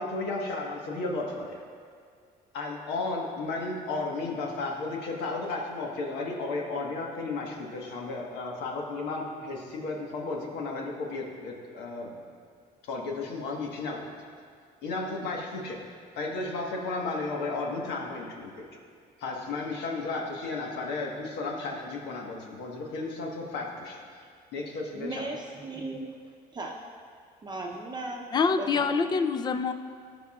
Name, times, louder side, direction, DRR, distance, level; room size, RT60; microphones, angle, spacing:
voice 1, 0.0-1.6 2.5-12.2 12.8-14.0 14.8-18.7 19.2-24.2 24.5-25.2, left 3 dB, 85° left, -1 dB, 1.5 m, -34 dB
voice 2, 24.9-26.1 26.5-26.7 27.4-28.2 28.6-28.9, right 2 dB, 25° right, -1 dB, 0.7 m, -36 dB
voice 3, 28.3-29.7, left 5 dB, 25° left, 9 dB, 0.4 m, -25 dB
17.5 x 5.9 x 2.4 m, 2.1 s
cardioid pair, 110°, 17 cm